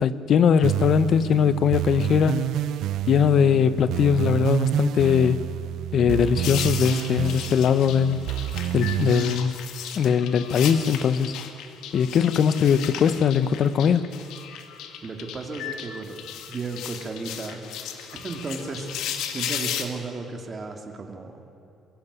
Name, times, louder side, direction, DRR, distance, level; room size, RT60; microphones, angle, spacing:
voice 1, 0.0-2.5 3.1-5.4 5.9-8.2 8.7-9.6 10.0-11.3 11.9-14.1, left 7 dB, 55° left, 14 dB, 0.9 m, -20 dB
sound 1, 0.6-9.4, right 12 dB, 75° right, 0.5 m, -28 dB
sound 2, 6.4-19.9, left 9 dB, 80° left, 1.8 m, -35 dB
voice 2, 15.0-16.2 16.5-21.4, right 3 dB, 30° right, 4 dB, 2.5 m, -35 dB
23.0 x 16.5 x 8.3 m, 2.9 s
cardioid pair, 125°, 0 cm